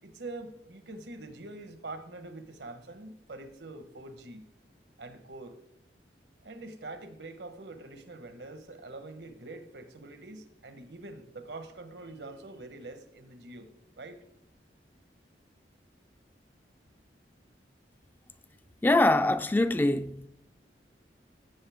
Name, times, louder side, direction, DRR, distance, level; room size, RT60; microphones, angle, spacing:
voice 1, 0.0-4.5 5.0-5.6 6.4-13.7 14.0-14.2, right 2 dB, 85° right, 1.2 m, -44 dB
voice 2, 18.8-20.3, left 2 dB, 10° left, 0.3 m, -24 dB
16.0 x 7.7 x 3.6 m
head